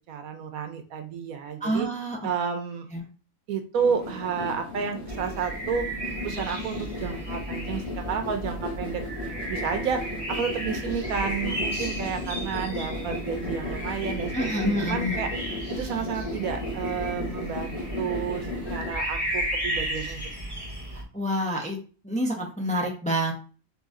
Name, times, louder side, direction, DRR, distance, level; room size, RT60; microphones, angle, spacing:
voice 1, 0.1-1.9 2.2-2.9 3.5-5.9 6.2-9.0 9.5-15.3 15.7-20.3, right 6 dB, 80° right, 6 dB, 1.2 m, -31 dB
voice 2, 1.6-2.2 2.9-3.0 14.3-15.2 20.9-21.8 22.0-23.3, equal, 5° left, -1 dB, 0.6 m, -27 dB
sound 1, 3.7-18.9, left 1 dB, 70° left, 2.1 m, -35 dB
sound 2, 5.1-21.0, right 1 dB, 25° left, 1.8 m, -34 dB
4.1 x 3.3 x 3.7 m, 0.38 s
omnidirectional pair, 1.5 m